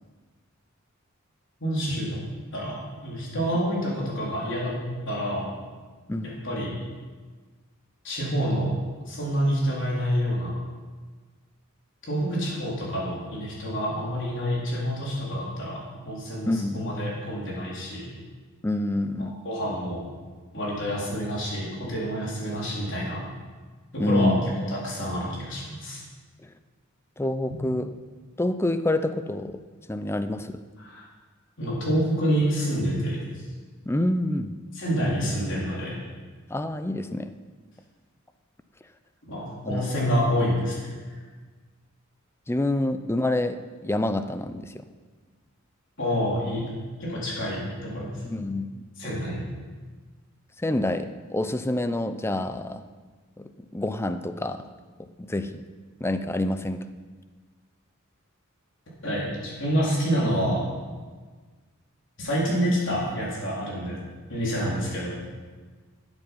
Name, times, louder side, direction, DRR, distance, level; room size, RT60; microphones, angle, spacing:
voice 1, 1.6-2.2 2.5-5.5 6.2-6.8 8.0-8.8 9.1-10.6 12.0-18.1 19.2-20.0 20.5-23.2 23.9-26.0 30.8-31.0 31.6-33.2 34.7-36.0 39.3-41.2 46.0-46.7 47.0-48.2 49.0-49.5 59.0-60.6 62.2-64.0 64.3-65.1, equal, 60° left, -5 dB, 3.9 m, -28 dB
voice 2, 16.5-16.8 18.6-19.4 24.0-24.5 26.4-26.5 27.2-27.9 28.4-29.6 29.9-30.6 33.9-34.6 36.5-37.3 39.6-39.8 42.5-44.9 48.2-48.8 50.6-52.8 53.4-54.6 55.0-55.6 56.0-56.8, left 1 dB, 10° left, 10 dB, 0.5 m, -27 dB
12.5 x 8.1 x 5.4 m, 1.4 s
head